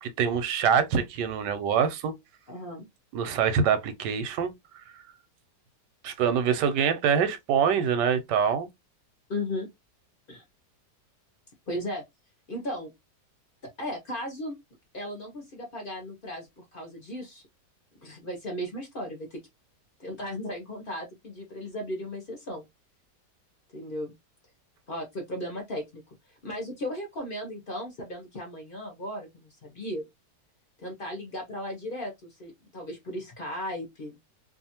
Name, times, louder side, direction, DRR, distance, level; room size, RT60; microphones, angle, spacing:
voice 1, 0.0-2.2 3.1-4.5 4.9-5.0 6.0-8.7, right 7 dB, 85° right, 1.2 m, -25 dB
voice 2, 2.5-2.9 9.3-9.7 10.3-10.4 11.7-12.0 12.5-12.9 13.8-14.5 14.9-17.5 18.0-19.4 20.0-22.7 23.7-24.1 24.9-26.0 26.4-30.1 30.8-34.2, left 1 dB, 55° left, 0.6 m, -36 dB
2.7 x 2.4 x 2.8 m
omnidirectional pair, 1.8 m